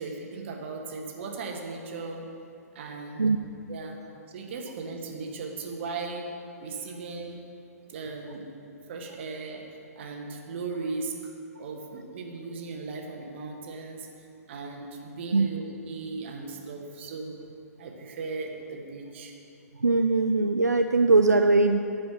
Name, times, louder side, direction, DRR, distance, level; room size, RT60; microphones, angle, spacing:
voice 1, 0.0-2.2 2.7-3.3 3.7-4.0 4.3-6.3 6.6-7.4 7.9-8.4 8.9-11.2 11.6-17.4 17.8-19.3, right 4 dB, 45° right, 1 dB, 1.4 m, -37 dB
voice 2, 19.8-21.8, right 3 dB, 80° right, 7 dB, 0.4 m, -21 dB
14.0 x 5.1 x 6.1 m, 2.7 s
figure-of-eight pair, 120°, 9 cm